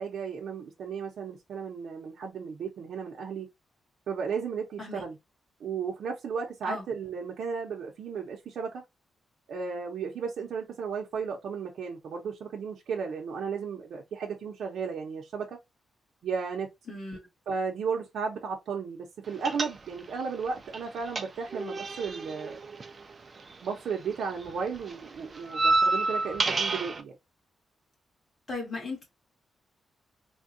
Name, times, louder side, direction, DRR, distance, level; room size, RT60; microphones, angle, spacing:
voice 1, 0.0-3.5 4.1-5.2 5.6-8.8 9.5-15.6 16.2-16.7 17.5-22.6 23.6-27.2, right 5 dB, 70° right, 0.6 m, -34 dB
voice 2, 16.9-17.2 28.5-29.0, left 3 dB, 30° left, 1.8 m, -36 dB
sound 1, 19.4-20.2 20.5-23.9 24.1-27.0, right 3 dB, 30° right, 0.4 m, -29 dB
3.5 x 2.2 x 2.6 m
wide cardioid pair, 150°, 0 cm